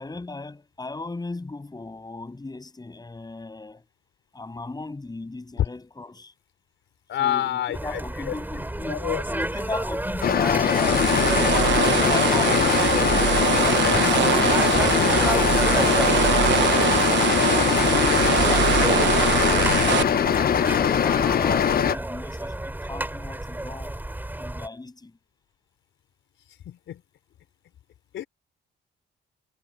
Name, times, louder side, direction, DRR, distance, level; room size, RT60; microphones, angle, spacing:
voice 1, 0.0-3.8 4.3-6.3 7.2-13.0 13.5-16.9 17.5-20.0 20.5-24.0 24.4-25.2, left 3 dB, 20° left, 7.5 m, -37 dB
voice 2, 7.1-8.3 8.9-9.2 17.3-17.6 17.9-18.2 26.5-27.0 28.1-28.3, left 11 dB, 75° left, 4.4 m, -28 dB
sound 1, 7.7-24.7, right 1 dB, 10° right, 5.4 m, -32 dB
sound 2, 10.2-22.0, left 8 dB, 50° left, 0.8 m, -21 dB
sound 3, 10.7-20.0, right 11 dB, 65° right, 0.9 m, -23 dB
cardioid pair, 90°, 20 cm